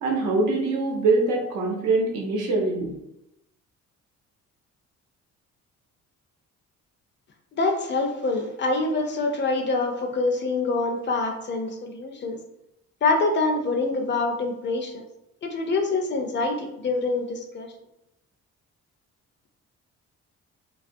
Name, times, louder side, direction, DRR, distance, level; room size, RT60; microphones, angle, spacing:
voice 1, 0.0-2.9, right 3 dB, 80° right, -1 dB, 0.7 m, -23 dB
voice 2, 7.6-12.4 13.0-15.0 15.4-17.7, left 3 dB, 40° left, 4 dB, 0.4 m, -25 dB
2.3 x 2.1 x 2.5 m, 0.86 s
cardioid pair, 90°, 30 cm